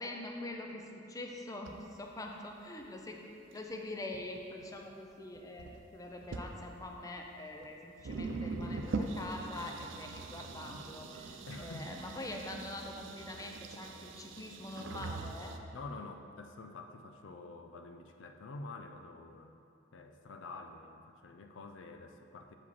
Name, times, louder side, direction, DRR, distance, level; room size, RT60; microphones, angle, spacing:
voice 1, 0.0-3.3 3.5-15.6, left 2 dB, 20° left, 2 dB, 0.5 m, -44 dB
sound 1, 1.6-1.7 2.8-2.9 3.6-3.7 4.1-4.9 5.4-5.8 6.2-6.5 7.3-7.4 7.6-7.7 8.0-15.6, right 3 dB, 80° right, 0.5 m, -42 dB
voice 2, 11.5-11.9 15.7-19.5 19.9-22.6, left 3 dB, 80° left, 6 dB, 0.5 m, -47 dB
7.0 x 5.1 x 4.1 m, 2.5 s
head